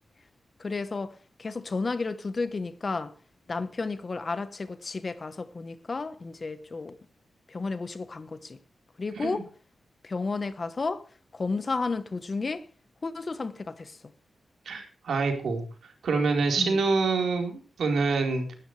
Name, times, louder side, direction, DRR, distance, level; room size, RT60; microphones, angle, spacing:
voice 1, 0.6-3.1 3.5-6.9 7.5-8.6 9.0-9.5 10.0-11.1 11.3-12.7 13.0-14.0 16.6-16.8, left 3 dB, 30° left, 1.2 m, -32 dB
voice 2, 14.7-15.6 16.0-18.4, right 4 dB, 80° right, 4.4 m, -26 dB
19.0 x 13.0 x 3.3 m
wide cardioid pair, 175°, 0 cm